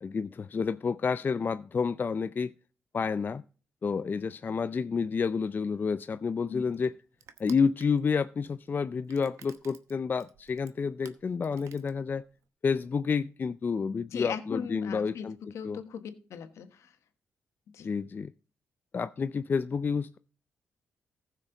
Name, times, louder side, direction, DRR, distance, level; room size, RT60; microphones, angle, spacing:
voice 1, 0.0-2.5 2.9-3.4 3.8-6.9 7.4-12.2 12.6-15.4 15.6-15.8 17.8-18.3 18.9-20.2, left 5 dB, 40° left, 0.4 m, -29 dB
Crushing, 5.7-12.5, right 8 dB, 80° right, 1.0 m, -56 dB
voice 2, 14.1-16.9 17.7-17.9, left 7 dB, 75° left, 1.3 m, -39 dB
14.5 x 6.4 x 3.9 m
cardioid pair, 65°, 5 cm